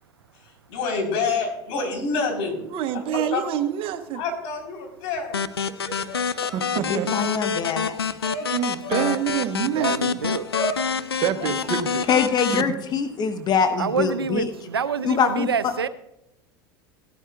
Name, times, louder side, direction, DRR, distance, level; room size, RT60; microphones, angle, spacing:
voice 1, 0.7-2.6 2.9-3.4 4.1-6.7 8.2-8.5 8.8-9.1 10.5-10.8, left 3 dB, 60° left, 3.9 m, -28 dB
voice 2, 2.7-4.2 6.5-7.1 8.5-9.9 11.2-12.0 12.5-12.6, right 10 dB, 45° right, 1.0 m, -26 dB
sound 1, 5.3-12.6, left 6 dB, 90° left, 0.4 m, -27 dB
voice 3, 6.9-7.9 12.1-14.5 15.0-15.7, left 6 dB, 35° left, 1.1 m, -23 dB
voice 4, 9.7-10.4 13.8-15.9, right 6 dB, 85° right, 0.6 m, -27 dB
17.0 x 12.0 x 2.4 m
figure-of-eight pair, 80°, 12 cm